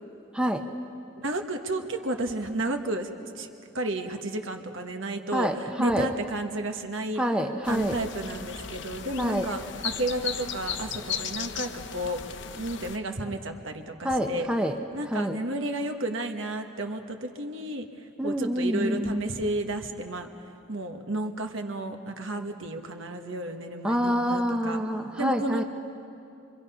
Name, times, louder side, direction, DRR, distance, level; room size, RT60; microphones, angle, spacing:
voice 1, 0.3-0.6 5.3-6.1 7.2-8.0 9.2-9.5 14.0-14.8 15.1-15.4 18.2-19.3 23.8-25.6, equal, 5° right, 3 dB, 0.8 m, -27 dB
voice 2, 1.2-3.1 3.3-3.5 3.7-7.2 7.7-14.5 14.9-20.3 20.7-24.8 25.2-25.6, right 1 dB, 65° right, 5 dB, 1.4 m, -32 dB
sound 1, 7.6-13.0, left 7 dB, 55° left, 0.8 m, -36 dB
25.5 x 24.5 x 5.6 m, 2.6 s
head